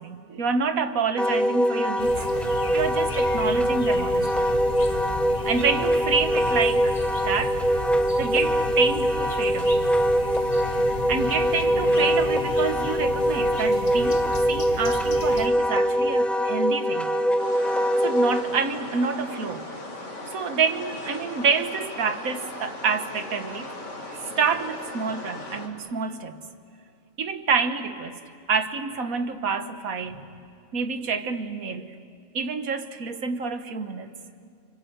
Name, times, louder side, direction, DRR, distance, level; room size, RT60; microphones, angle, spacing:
voice 1, 0.0-2.2 2.7-4.4 5.4-7.0 7.2-7.6 7.9-9.8 11.1-17.2 18.0-19.7 20.3-23.7 24.0-26.4 27.2-28.2 28.5-30.4 30.7-32.0 32.3-34.1, right 5 dB, 75° right, 9 dB, 1.7 m, -28 dB
Wind instrument woodwind instrument, 1.2-18.4, equal, ahead, 1.0 m, -23 dB
sound 1, 2.0-15.5, left 1 dB, 30° left, 1.6 m, -35 dB
sound 2, 17.4-25.7, left 2 dB, 55° left, 2.9 m, -38 dB
29.5 x 25.0 x 8.0 m, 2.4 s
omnidirectional pair, 1.5 m